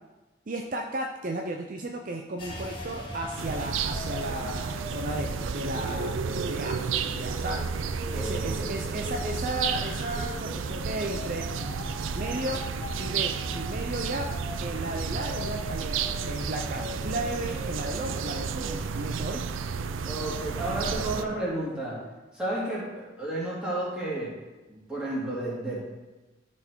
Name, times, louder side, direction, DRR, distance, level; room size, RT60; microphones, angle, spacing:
voice 1, 0.5-6.1 6.4-6.8 7.1-7.6 8.1-11.5 12.1-12.6 13.0-14.3 14.6-19.4, right 1 dB, 45° right, 2 dB, 0.5 m, -34 dB
sound 1, 2.4-19.0, left 1 dB, 25° left, 1.6 m, -39 dB
sound 2, 3.4-21.2, right 6 dB, 90° right, 0.4 m, -32 dB
voice 2, 8.1-9.0 20.0-22.0 22.3-24.3 24.9-25.9, right 1 dB, 5° right, -9 dB, 2.8 m, -32 dB
13.0 x 4.5 x 4.6 m, 1.1 s
head